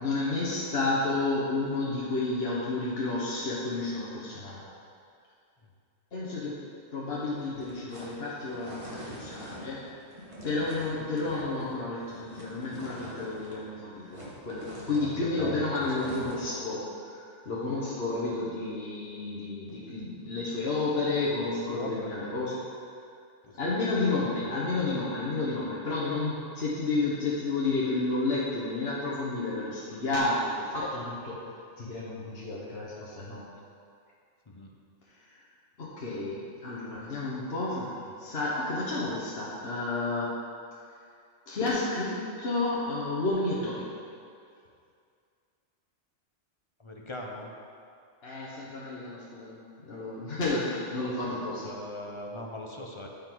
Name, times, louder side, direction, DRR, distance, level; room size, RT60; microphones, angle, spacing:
voice 1, 0.0-4.6 6.1-6.6 6.9-9.8 10.4-22.5 23.6-31.4 31.8-33.4 35.8-40.4 41.5-43.8 48.2-51.7, left 3 dB, 55° left, -7 dB, 1.6 m, -31 dB
sound 1, 7.3-13.7 13.9-16.6, equal, 25° right, 1.9 m, -45 dB
voice 2, 14.9-16.0 17.5-17.8 21.7-22.5 23.4-23.6 33.2-33.4 34.5-34.7 46.8-47.5 51.6-53.1, left 2 dB, 30° left, 0 dB, 0.8 m, -40 dB
14.0 x 5.4 x 4.0 m, 2.4 s
omnidirectional pair, 1.2 m